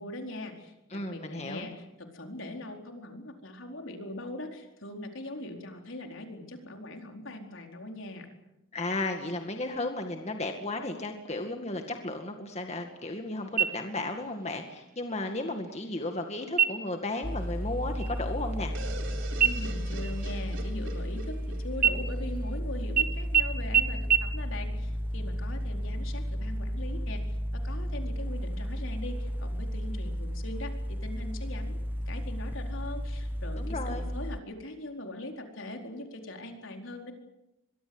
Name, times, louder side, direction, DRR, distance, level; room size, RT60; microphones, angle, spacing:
voice 1, 0.0-8.3 19.4-27.2 27.5-31.8 32.1-37.1, left 1 dB, 75° left, 3 dB, 4.4 m, -41 dB
voice 2, 0.9-1.7 8.7-18.7 33.6-34.0, left 2 dB, 30° left, 4 dB, 2.1 m, -34 dB
sound 1, 13.6-14.2 14.6-14.7 15.3-15.8 16.5-17.0 17.4-17.7 18.0-19.1 19.4-21.4 21.8-22.6 23.0-23.1 23.3-23.4 23.7-23.8 24.1-24.2, right 8 dB, 40° right, 1.7 m, -27 dB
sound 2, 17.2-34.4, equal, 10° right, 1.0 m, -33 dB
sound 3, 18.7-22.5, right 2 dB, 70° right, 4.3 m, -43 dB
23.5 x 23.0 x 8.0 m, 0.91 s
head